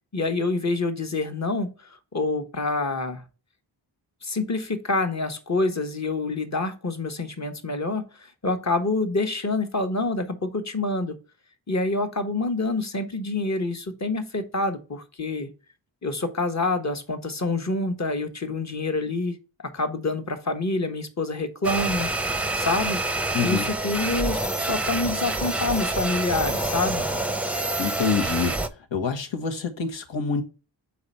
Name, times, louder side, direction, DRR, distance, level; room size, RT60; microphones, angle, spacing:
voice 1, 0.1-3.2 4.2-11.1 11.7-15.5 16.0-19.4 19.7-22.1 22.5-23.0 23.4-27.1, left 2 dB, 35° left, 1.3 m, -27 dB
sound 1, 21.6-28.7, right 2 dB, 5° right, 0.7 m, -27 dB
voice 2, 23.3-23.6 27.8-28.6 28.9-30.4, left 5 dB, 75° left, 1.3 m, -26 dB
4.8 x 4.3 x 5.6 m
cardioid pair, 60°, 46 cm